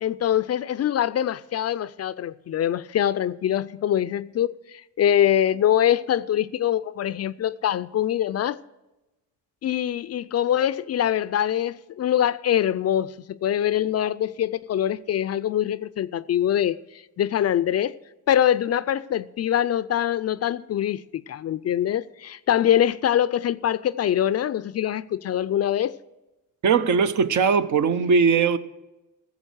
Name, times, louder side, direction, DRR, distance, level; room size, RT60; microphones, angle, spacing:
voice 1, 0.0-8.6 9.6-16.8 17.2-18.0 18.3-25.9, left 10 dB, 45° left, 0.4 m, -24 dB
voice 2, 26.6-28.6, right 5 dB, 55° right, 0.8 m, -20 dB
14.5 x 7.2 x 6.3 m
supercardioid pair, 65°, 34 cm